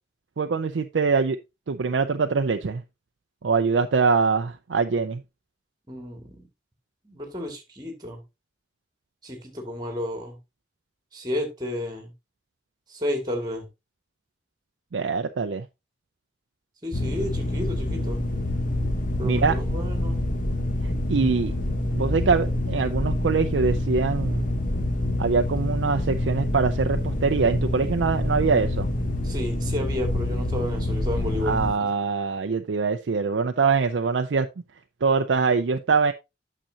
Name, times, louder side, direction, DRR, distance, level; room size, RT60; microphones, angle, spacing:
voice 1, 0.4-1.4 1.7-2.8 3.4-5.2 14.9-15.7 19.2-19.6 20.8-21.5 21.9-24.5 25.2-28.9 31.4-34.5 35.0-36.1, right 5 dB, 80° right, 0.5 m, -23 dB
voice 2, 5.9-6.4 7.0-8.2 9.2-10.4 11.1-12.1 12.9-13.7 16.8-18.2 19.2-20.2 29.2-31.9, left 1 dB, 20° right, 2.2 m, -32 dB
sound 1, 16.9-31.7, left 1 dB, 45° left, 1.2 m, -27 dB
8.8 x 6.8 x 2.8 m
head